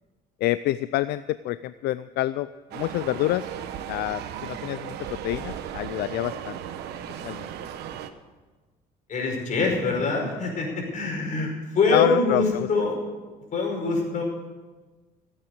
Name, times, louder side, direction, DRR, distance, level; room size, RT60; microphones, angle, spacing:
voice 1, 0.4-2.5 2.7-3.5 3.9-6.6 7.2-7.5 11.4-11.5 11.9-12.7, left 15 dB, 75° left, 15 dB, 0.4 m, -27 dB
sound 1, 2.7-8.1, right 9 dB, 80° right, 1.1 m, -36 dB
voice 2, 9.1-13.0 13.5-14.2, left 3 dB, 50° left, 1 dB, 5.4 m, -24 dB
15.5 x 8.9 x 8.0 m, 1.3 s
cardioid pair, 110°, 17 cm